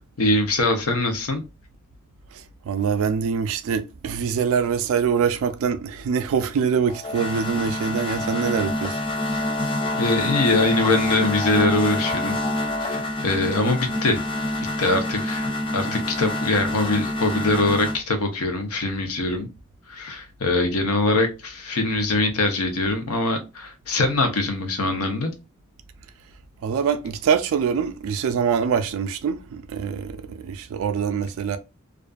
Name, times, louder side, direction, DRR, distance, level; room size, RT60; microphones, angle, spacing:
voice 1, 0.2-1.4 10.0-12.4 12.8-14.2 14.8-15.5 15.7-19.5 19.9-25.3, left 2 dB, 90° left, 0.7 m, -23 dB
voice 2, 2.3-9.0 26.6-31.6, right 6 dB, 65° right, 0.3 m, -24 dB
sound 1, 6.9-18.0, left 1 dB, 25° left, 0.3 m, -27 dB
2.5 x 2.3 x 2.3 m
head